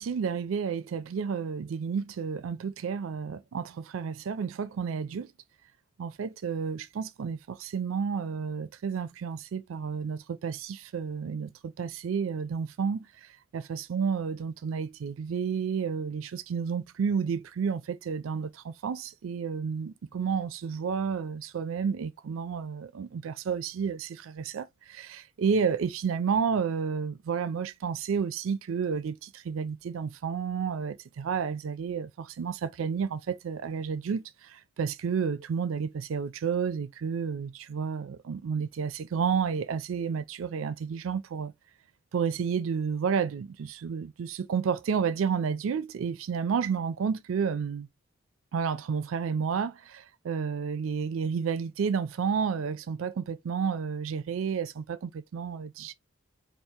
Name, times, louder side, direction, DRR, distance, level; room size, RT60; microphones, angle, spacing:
voice 1, 0.0-5.3 6.0-13.1 13.5-41.5 42.1-47.9 48.5-55.9, right 6 dB, 85° right, 0.4 m, -31 dB
4.6 x 2.4 x 2.8 m
head